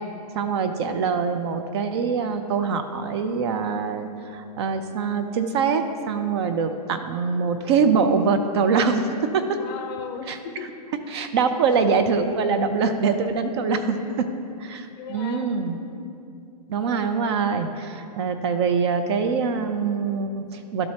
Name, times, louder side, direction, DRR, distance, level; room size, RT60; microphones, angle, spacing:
voice 1, 0.3-9.1 9.3-9.6 10.3-10.4 11.1-14.0 14.6-15.8 16.7-20.9, right 5 dB, 40° right, 8 dB, 0.5 m, -24 dB
voice 2, 9.6-10.7 13.8-14.2 14.9-15.5 15.8-16.1, left 6 dB, 35° left, 4 dB, 0.8 m, -37 dB
12.5 x 4.3 x 2.8 m, 2.5 s
hypercardioid pair, 145°, 21 cm